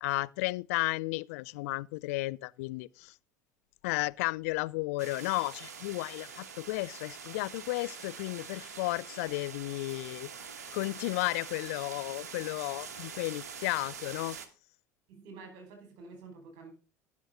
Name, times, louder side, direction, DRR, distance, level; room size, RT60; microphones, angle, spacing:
voice 1, 0.0-3.1 3.8-10.3 10.7-14.4, left 22 dB, 60° left, 0.4 m, -33 dB
sound 1, 5.0-14.5, right 6 dB, 70° right, 1.3 m, -45 dB
voice 2, 15.1-16.7, right 4 dB, 55° right, 4.3 m, -49 dB
18.0 x 6.3 x 3.6 m
figure-of-eight pair, 70°, 9 cm